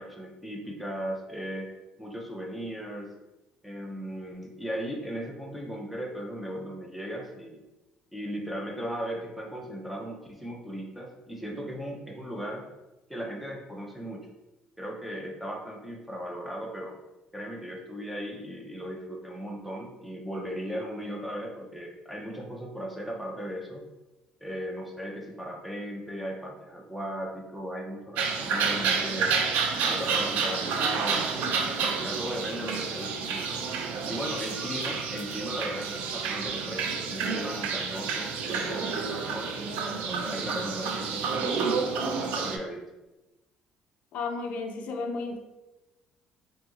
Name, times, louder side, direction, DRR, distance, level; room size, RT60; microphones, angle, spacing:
voice 1, 0.0-3.1 3.6-7.6 8.1-12.7 13.1-14.3 14.8-17.0 17.3-23.8 24.4-29.3 29.8-31.6 32.0-33.6 34.1-41.6 42.0-42.8, equal, ahead, -1 dB, 0.5 m, -37 dB
sound 1, 28.2-42.6, right 5 dB, 75° right, 0.4 m, -29 dB
voice 2, 44.1-45.4, left 3 dB, 60° left, 4 dB, 0.3 m, -33 dB
2.8 x 2.6 x 2.4 m, 1.0 s
cardioid pair, 120°, 3 cm